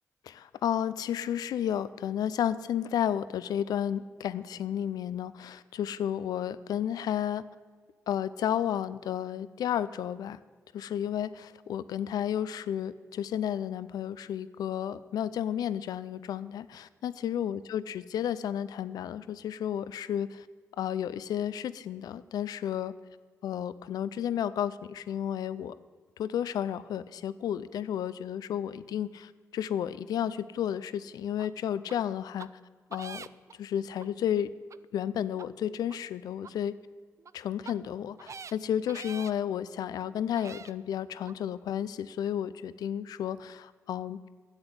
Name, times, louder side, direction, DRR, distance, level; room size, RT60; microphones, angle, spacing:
voice 1, 0.3-7.4 8.1-10.4 10.7-20.5 20.8-22.9 23.4-25.7 26.2-32.5 32.9-33.2 33.6-34.5 34.9-36.7 37.3-44.3, left 10 dB, 85° left, 16 dB, 0.4 m, -32 dB
sound 1, 31.4-31.5 31.9-32.0 32.4-32.5 32.9-33.5 34.0-34.1 34.7-34.8 35.3-35.5 35.9-36.0 36.4-36.5 37.2-37.3 37.6-37.7 38.2-38.5 38.9-39.3 39.9-40.0 40.4-40.7 41.3-41.4, right 6 dB, 50° right, 0.4 m, -44 dB
10.5 x 8.0 x 8.6 m, 1.5 s
supercardioid pair, 45°, 6 cm